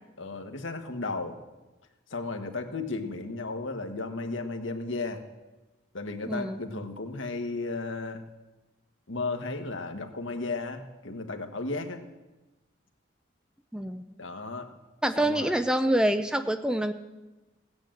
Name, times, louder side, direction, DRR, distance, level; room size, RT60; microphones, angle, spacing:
voice 1, 0.2-1.4 2.1-5.2 5.9-8.2 9.1-12.0 14.2-14.7 15.2-15.6, left 3 dB, 75° left, 5 dB, 1.5 m, -34 dB
voice 2, 6.2-6.6 13.7-14.0 15.0-16.9, right 1 dB, 5° right, 9 dB, 0.5 m, -26 dB
17.0 x 9.6 x 7.8 m, 1.1 s
head